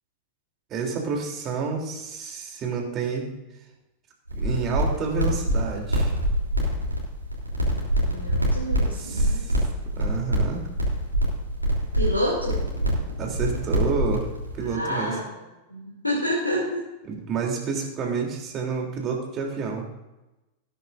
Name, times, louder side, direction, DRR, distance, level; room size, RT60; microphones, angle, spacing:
voice 1, 0.7-3.3 4.3-6.1 8.9-9.6 9.9-10.6 13.2-14.2 14.6-15.1 17.1-19.9, right 5 dB, 30° right, 0 dB, 3.2 m, -29 dB
sound 1, 4.3-14.7, equal, 85° right, 3.3 m, -25 dB
voice 2, 8.0-9.5 11.9-12.6 14.6-15.4 15.7-16.8, equal, 85° left, -6 dB, 3.0 m, -28 dB
18.5 x 10.0 x 2.6 m, 1.0 s
figure-of-eight pair, 90°, 0 cm